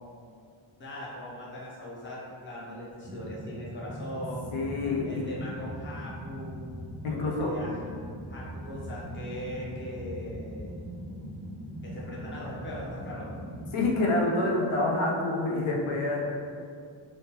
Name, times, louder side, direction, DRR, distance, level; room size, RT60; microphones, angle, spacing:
voice 1, 0.8-4.5 5.0-6.6 7.1-7.9 8.3-10.8 11.8-13.3, equal, 25° left, -7 dB, 0.7 m, -40 dB
sound 1, 3.0-13.9, equal, 20° right, 0.3 m, -40 dB
voice 2, 4.5-5.3 7.0-7.5 13.7-16.4, left 2 dB, 80° left, -2 dB, 0.6 m, -27 dB
3.4 x 2.6 x 2.9 m, 2.3 s
wide cardioid pair, 165°, 49 cm